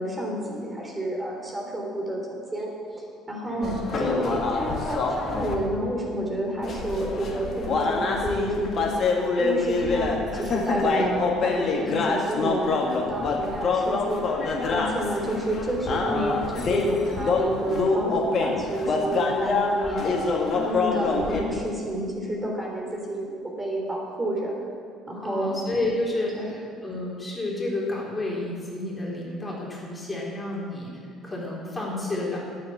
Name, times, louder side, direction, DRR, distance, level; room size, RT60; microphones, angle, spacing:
voice 1, 0.0-9.0 9.4-14.3 14.7-20.0 20.5-23.3 23.6-24.5 25.1-25.6 26.3-26.6, right 1 dB, 20° right, -2 dB, 3.7 m, -30 dB
voice 2, 3.5-3.8 25.2-30.9 31.2-32.4, left 2 dB, 20° left, -4 dB, 3.7 m, -30 dB
sound 1, 3.6-5.6 6.6-21.4, left 4 dB, 50° left, 2.0 m, -26 dB
9.3 x 9.3 x 8.6 m, 2.3 s
hypercardioid pair, 60°, 0 cm